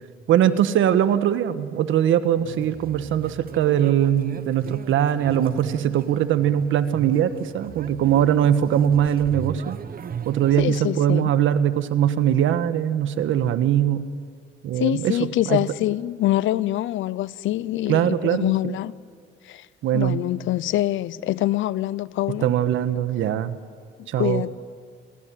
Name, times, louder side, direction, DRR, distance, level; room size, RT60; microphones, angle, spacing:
voice 1, 0.3-9.8 10.2-14.1 14.6-15.2 15.4-15.6 17.9-18.8 19.8-20.2 22.4-23.6 24.1-24.5, right 10 dB, 80° right, 1.4 m, -21 dB
sound 1, 2.4-10.8, right 8 dB, 45° right, 1.0 m, -38 dB
voice 2, 10.6-11.3 14.8-18.9 19.5-19.7 19.9-22.5 24.0-24.5, left 14 dB, 80° left, 0.7 m, -25 dB
27.5 x 22.5 x 7.6 m
cardioid pair, 90°, 20 cm